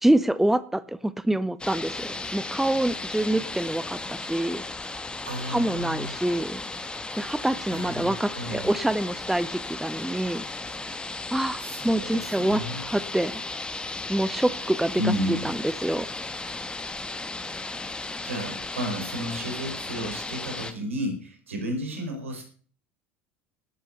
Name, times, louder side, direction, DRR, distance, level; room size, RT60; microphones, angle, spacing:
voice 1, 0.0-4.6 5.5-6.6 7.2-10.4 11.3-13.3 14.1-14.9 15.3-16.1, right 1 dB, 5° right, 16 dB, 0.7 m, -26 dB
sound 1, 1.6-20.7, left 3 dB, 15° left, 1.6 m, -35 dB
voice 2, 5.2-6.2 7.7-8.7 11.6-12.8 15.0-15.5 18.2-22.4, equal, 80° right, 3 dB, 4.7 m, -32 dB
12.0 x 10.0 x 6.7 m, 0.43 s
figure-of-eight pair, 70°, 7 cm